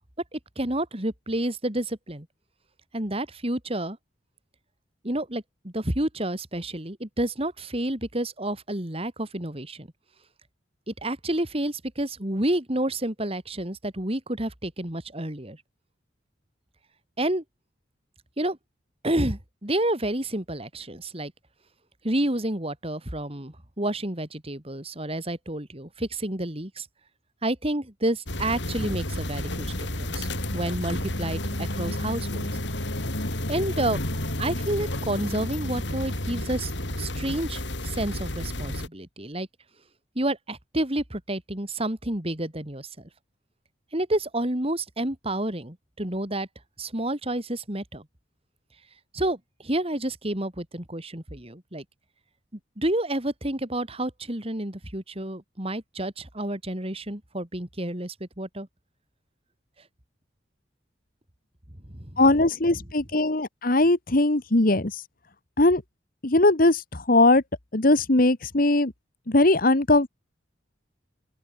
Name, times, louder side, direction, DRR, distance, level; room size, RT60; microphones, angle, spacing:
voice 1, 0.3-2.3 2.9-4.0 5.0-9.9 10.9-15.6 17.2-17.4 18.4-18.6 19.0-21.3 22.0-26.9 27.4-32.5 33.5-34.0 34.4-36.7 37.0-39.5 40.1-42.9 43.9-46.5 46.8-48.0 49.1-51.8 52.8-58.7 61.9-62.2, right 1 dB, 30° right, 3.1 m, -29 dB
sound 1, 28.3-38.9, left 1 dB, 70° left, 7.3 m, -31 dB
voice 2, 62.2-64.9 65.6-65.8 66.2-67.4 67.7-68.9 69.3-70.1, left 2 dB, 50° left, 1.6 m, -20 dB
open air
head